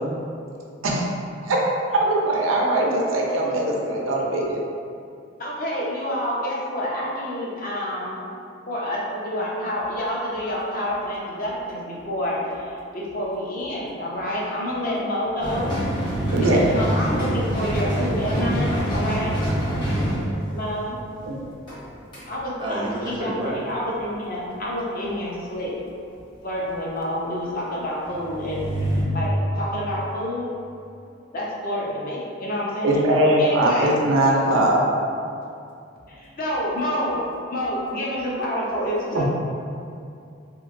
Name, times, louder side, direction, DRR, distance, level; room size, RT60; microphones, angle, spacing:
voice 1, 1.9-4.6 16.3-16.7 21.3-21.4 32.8-34.8 39.1-39.2, right 1 dB, 85° right, -1 dB, 0.5 m, -20 dB
voice 2, 5.4-8.2 8.7-12.4 12.9-15.8 16.5-19.4 20.5-20.9 22.3-25.7 26.4-28.7 29.1-30.5 31.3-33.0 33.4-33.9 36.4-37.2 37.5-39.2, equal, 45° left, -4 dB, 0.5 m, -28 dB
sound 1, 15.4-20.9 21.2-21.3 21.7-21.8 22.1-22.2 28.0-29.0, right 1 dB, 25° left, 0.8 m, -25 dB
voice 3, 22.6-23.6, right 1 dB, 25° right, -4 dB, 0.4 m, -29 dB
2.9 x 2.5 x 2.5 m, 2.5 s
head